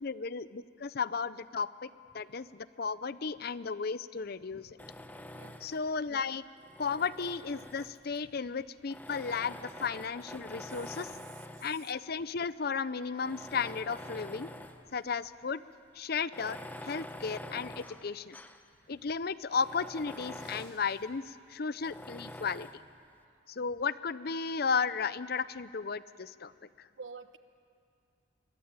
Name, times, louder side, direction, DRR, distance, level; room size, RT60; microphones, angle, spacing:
voice 1, 0.0-1.9 2.1-4.8 5.6-6.4 6.8-11.1 11.6-14.5 14.9-15.6 16.0-16.6 16.8-18.4 18.9-22.7 23.5-26.5 26.8-26.9, left 5 dB, 55° left, 16 dB, 0.6 m, -34 dB
Tools, 4.8-5.9 6.6-8.2 8.9-11.8 12.5-12.6 13.1-14.9 15.2-15.3 16.2-18.7 19.1-19.2 19.5-20.9 21.8-22.8, left 1 dB, 10° left, 1.0 m, -46 dB
voice 2, 10.7-11.7 27.0-27.4, right 5 dB, 80° right, 10 dB, 1.2 m, -49 dB
sound 1, 20.3-21.3 21.7-21.9, right 4 dB, 45° right, 5.5 m, -59 dB
23.0 x 22.5 x 8.8 m, 2.4 s
head